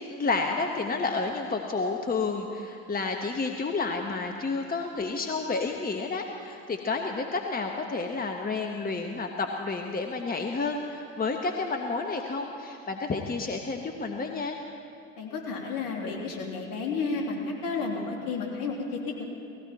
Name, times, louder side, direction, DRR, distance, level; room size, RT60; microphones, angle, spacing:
voice 1, 0.1-14.6, left 3 dB, 20° left, 3 dB, 1.3 m, -30 dB
voice 2, 15.2-19.2, left 4 dB, 55° left, 0 dB, 3.2 m, -32 dB
19.0 x 16.0 x 4.3 m, 2.6 s
hypercardioid pair, 65°, 39 cm